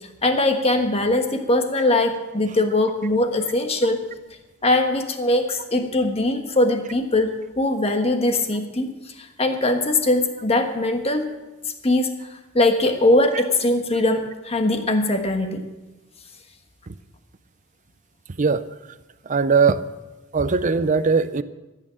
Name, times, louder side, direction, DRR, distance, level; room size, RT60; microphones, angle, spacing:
voice 1, 0.2-4.0 4.6-11.3 11.8-12.1 12.5-15.6, left 2 dB, 30° left, 6 dB, 1.4 m, -21 dB
voice 2, 19.3-19.8 20.3-21.4, right 5 dB, 40° right, 13 dB, 0.5 m, -19 dB
14.0 x 8.8 x 7.5 m, 1.1 s
head